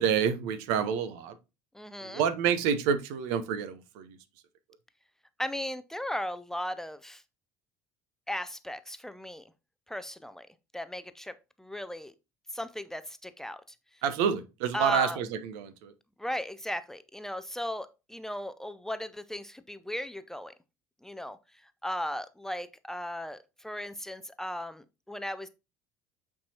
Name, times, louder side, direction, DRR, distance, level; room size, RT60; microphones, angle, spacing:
voice 1, 0.0-1.4 2.0-4.2 14.0-15.9, right 7 dB, 60° right, 0.7 m, -28 dB
voice 2, 1.7-2.2 5.4-7.2 8.3-9.5 9.9-10.5 10.7-12.1 12.5-13.6 14.7-15.2 16.2-20.5 21.0-21.4 21.6-25.5, left 1 dB, 5° left, 0.5 m, -36 dB
8.5 x 4.7 x 2.8 m
figure-of-eight pair, 60°, 9 cm